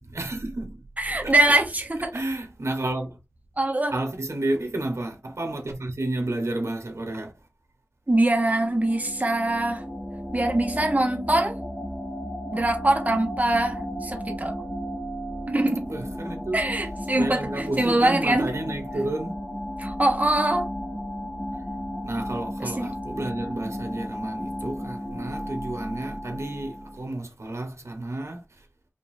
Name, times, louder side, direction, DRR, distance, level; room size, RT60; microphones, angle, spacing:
voice 1, 0.0-0.8 1.1-1.6 2.1-3.2 3.9-7.3 15.9-16.6 17.1-19.3 22.0-28.7, right 2 dB, 80° right, 1.2 m, -31 dB
voice 2, 1.0-2.1 3.6-3.9 8.1-9.8 10.3-11.6 12.5-14.5 15.5-15.9 16.5-18.5 19.8-20.7 22.6-22.9, right 1 dB, 35° right, 1.3 m, -23 dB
sound 1, 8.2-27.1, equal, 10° left, 1.2 m, -34 dB
5.2 x 2.7 x 2.6 m
wide cardioid pair, 55°, 5 cm